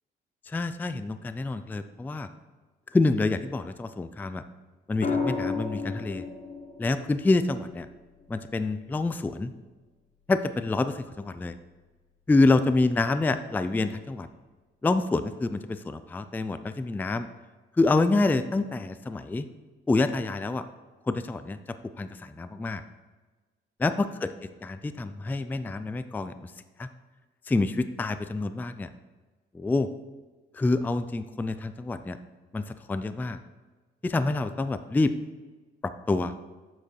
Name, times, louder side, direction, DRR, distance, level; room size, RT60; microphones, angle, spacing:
voice 1, 0.5-2.3 2.9-4.4 4.9-6.2 6.8-7.9 8.3-9.5 10.3-11.5 12.3-14.3 14.8-17.3 17.8-19.5 19.9-20.6 21.1-21.6 22.0-22.8 23.8-26.5 26.8-26.9 27.5-28.9 29.5-29.9 30.5-32.2 32.5-33.4 34.0-35.1 35.8-36.3, left 3 dB, 10° left, 11 dB, 0.3 m, -27 dB
sound 1, 5.0-9.1 10.8-11.2, left 4 dB, 35° left, 1.0 m, -34 dB
7.4 x 6.6 x 3.2 m, 1.3 s
cardioid pair, 90°, 20 cm